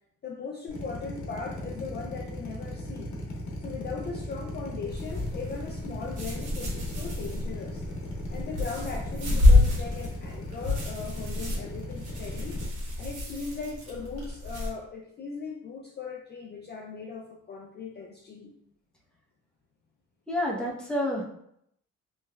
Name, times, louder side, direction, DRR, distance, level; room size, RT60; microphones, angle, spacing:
voice 1, 0.2-3.1 3.6-7.8 8.3-12.6 13.0-18.5, left 5 dB, 35° left, 0 dB, 0.4 m, -39 dB
Drill, 0.7-12.7, left 1 dB, 65° left, 0.9 m, -38 dB
sound 1, 4.9-14.7, left 2 dB, 85° right, 1.2 m, -28 dB
sound 2, 13.1-14.3, right 2 dB, 60° right, 1.2 m, -50 dB
voice 2, 20.3-21.2, left 1 dB, 5° left, -4 dB, 0.9 m, -28 dB
3.1 x 3.1 x 2.3 m, 0.73 s
cardioid pair, 90°, 30 cm